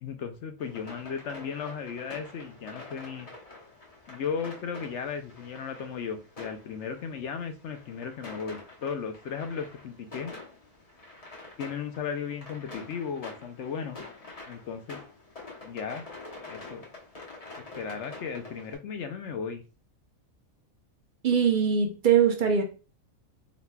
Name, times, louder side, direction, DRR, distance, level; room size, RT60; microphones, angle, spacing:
voice 1, 0.0-3.3 4.1-10.3 11.6-14.0 14.5-15.0 15.6-16.0 16.5-16.9 17.8-19.6, left 6 dB, 65° left, 0.9 m, -35 dB
sound 1, 0.6-18.7, left 3 dB, 30° left, 0.9 m, -46 dB
voice 2, 21.2-22.6, right 7 dB, 45° right, 0.7 m, -22 dB
4.1 x 4.1 x 2.3 m
omnidirectional pair, 1.4 m